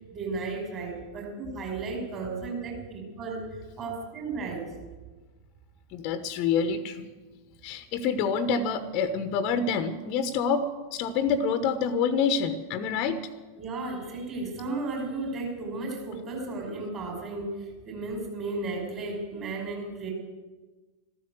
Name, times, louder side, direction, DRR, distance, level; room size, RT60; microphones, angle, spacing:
voice 1, 0.1-4.7 13.6-20.1, right 3 dB, 30° right, 1 dB, 5.8 m, -34 dB
voice 2, 5.9-7.1 7.6-13.2, left 5 dB, 40° left, 11 dB, 1.0 m, -27 dB
13.5 x 13.0 x 7.9 m, 1.3 s
figure-of-eight pair, 90°, 0 cm